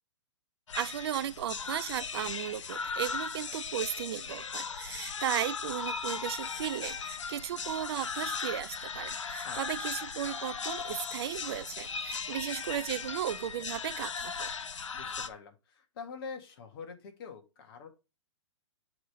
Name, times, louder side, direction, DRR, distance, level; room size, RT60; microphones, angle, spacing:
sound 1, 0.7-15.3, left 5 dB, 85° left, 0.8 m, -37 dB
voice 1, 0.7-14.5, right 11 dB, 55° right, 0.5 m, -36 dB
voice 2, 14.9-17.9, left 5 dB, 50° left, 2.0 m, -45 dB
7.0 x 3.6 x 4.9 m
hypercardioid pair, 130°, 16 cm